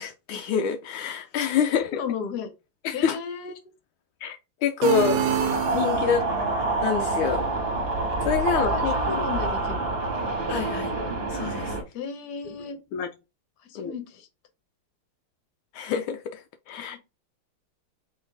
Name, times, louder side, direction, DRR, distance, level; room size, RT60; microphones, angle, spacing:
voice 1, 0.0-2.0 2.8-3.2 4.2-5.3 5.7-6.3 6.8-7.4 8.2-9.5 10.5-10.9 11.3-11.8 12.9-13.1 13.7-13.9 15.7-17.0, left 7 dB, 80° left, 1.3 m, -27 dB
voice 2, 1.7-2.5 2.9-3.5 5.4-5.5 5.9-6.2 8.5-9.9 11.9-12.8 13.6-14.3 16.9-17.0, left 6 dB, 55° left, 1.4 m, -35 dB
sound 1, 4.8-6.4, right 8 dB, 75° right, 1.2 m, -27 dB
sound 2, 5.0-11.8, right 2 dB, 30° right, 1.3 m, -27 dB
4.4 x 3.3 x 3.3 m
omnidirectional pair, 2.4 m